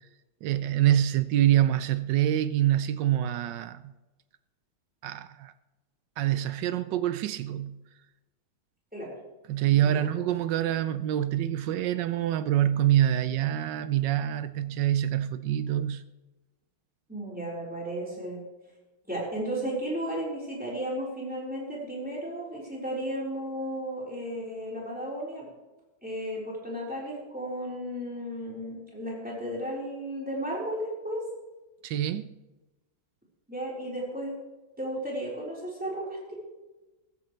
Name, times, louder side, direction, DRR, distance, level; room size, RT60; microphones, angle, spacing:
voice 1, 0.4-3.9 5.0-5.5 6.2-7.8 9.5-16.0 31.8-32.3, right 12 dB, 75° right, 1.0 m, -26 dB
voice 2, 9.7-10.1 17.1-18.4 19.0-25.5 26.0-31.2 33.5-34.3 34.8-36.3, right 1 dB, 5° right, 4.1 m, -34 dB
15.5 x 14.5 x 3.3 m
omnidirectional pair, 2.3 m